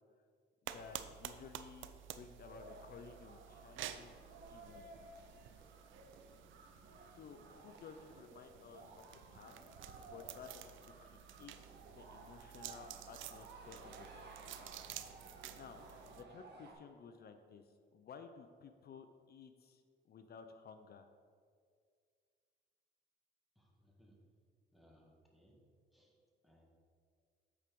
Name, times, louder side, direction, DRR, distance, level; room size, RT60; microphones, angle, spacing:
voice 1, 0.6-4.1 4.5-4.9 5.5-5.8 7.1-9.0 9.3-9.6 10.0-14.3 15.5-15.8 16.1-21.1, left 6 dB, 50° left, 7 dB, 0.5 m, -55 dB
sound 1, 0.7-16.2, right 11 dB, 80° right, 0.5 m, -52 dB
sound 2, 2.5-16.7, right 2 dB, 60° right, 1.4 m, -57 dB
voice 2, 23.5-24.2 24.7-25.6 25.9-26.2 26.4-26.6, equal, ahead, -1 dB, 1.6 m, -67 dB
8.3 x 4.4 x 5.3 m, 2.1 s
cardioid pair, 90°, 20 cm